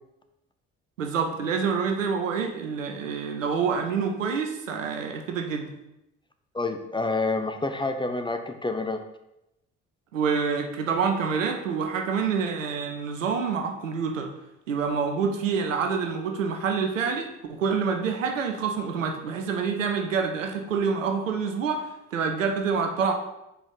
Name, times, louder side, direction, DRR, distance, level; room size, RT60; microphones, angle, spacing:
voice 1, 1.0-5.7 10.1-14.3 14.7-23.1, right 5 dB, 85° right, 4 dB, 0.7 m, -27 dB
voice 2, 6.5-9.0, left 3 dB, 10° left, 6 dB, 0.8 m, -28 dB
5.0 x 4.8 x 5.3 m, 0.87 s
figure-of-eight pair, 50°, 38 cm